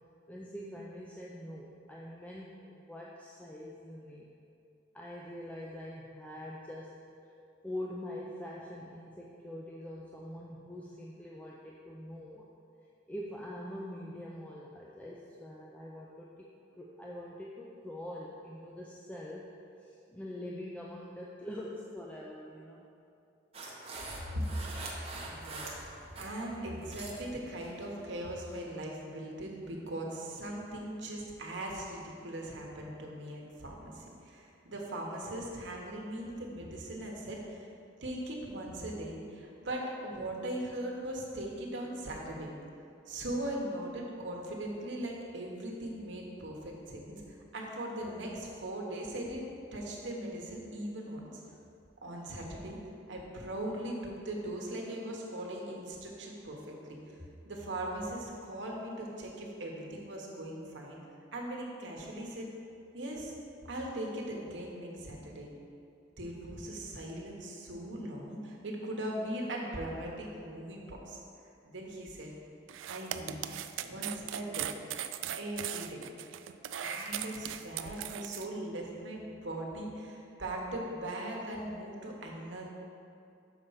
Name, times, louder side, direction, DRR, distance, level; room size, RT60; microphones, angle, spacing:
voice 1, 0.3-4.3 4.9-7.0 7.6-12.4 13.1-16.5 16.8-19.5 19.8-22.9 57.2-57.3 73.1-73.2, left 1 dB, 10° left, -4 dB, 0.4 m, -44 dB
sound 1, 23.5-26.3 26.6-27.2 27.6-27.9 28.4-28.6, right 3 dB, 30° right, 0.9 m, -44 dB
voice 2, 25.1-37.6 38.0-42.5 43.1-51.3 52.0-52.8 53.1-57.0 57.4-61.0 61.3-62.5 62.9-63.3 63.6-65.5 66.2-71.2 71.6-72.3 72.9-73.4 73.7-74.7 75.3-76.0 76.7-82.7, right 1 dB, 65° right, -1 dB, 1.1 m, -39 dB
sound 2, 72.7-78.5, right 11 dB, 85° right, 0.3 m, -39 dB
6.6 x 4.4 x 5.6 m, 2.6 s
head